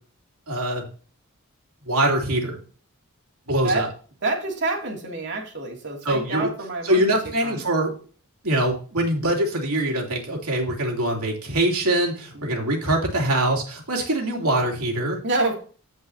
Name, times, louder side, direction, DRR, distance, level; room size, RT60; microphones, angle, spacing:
voice 1, 0.5-0.8 1.8-2.6 3.5-3.9 6.0-6.5 6.8-7.9 8.4-15.2, right 1 dB, 85° right, 0 dB, 3.0 m, -23 dB
voice 2, 4.2-7.6 12.3-12.7 15.2-15.5, right 2 dB, 55° right, 0 dB, 2.6 m, -28 dB
15.0 x 5.4 x 2.8 m, 0.40 s
head